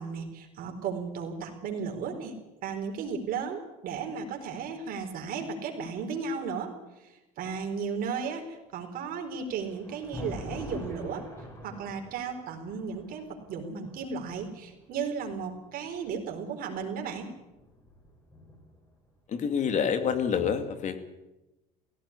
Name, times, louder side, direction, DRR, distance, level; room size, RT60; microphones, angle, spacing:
voice 1, 0.0-2.3 2.6-11.3 11.6-17.3, right 5 dB, 55° right, 4 dB, 4.5 m, -35 dB
Thunder, 8.9-16.1 17.1-18.9, left 1 dB, 15° left, 6.7 m, -45 dB
voice 2, 19.3-21.0, left 7 dB, 45° left, 9 dB, 2.5 m, -27 dB
16.5 x 16.5 x 9.9 m, 1.0 s
supercardioid pair, 105°, 17 cm